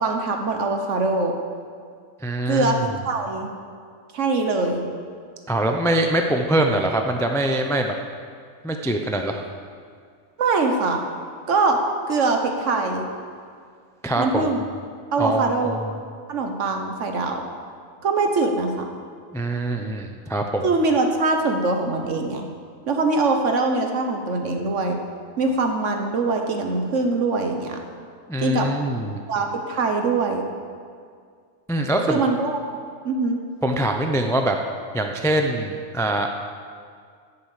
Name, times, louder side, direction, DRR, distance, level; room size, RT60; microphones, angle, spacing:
voice 1, 0.0-1.3 2.5-3.5 4.1-4.8 10.4-11.0 11.5-11.8 12.1-13.1 14.2-14.6 15.1-15.8 16.3-17.4 18.0-18.9 20.6-22.5 22.9-25.0 25.4-27.8 28.4-28.7 29.3-30.4 32.1-32.6 33.0-33.5, right 3 dB, 60° right, 4 dB, 1.4 m, -22 dB
voice 2, 2.2-2.9 5.5-7.9 8.6-9.4 14.0-14.5 15.2-15.8 19.3-20.6 28.3-29.2 31.7-32.2 33.6-34.6 34.9-36.3, right 1 dB, 5° left, 4 dB, 0.4 m, -23 dB
11.5 x 6.8 x 8.4 m, 2.1 s
omnidirectional pair, 1.5 m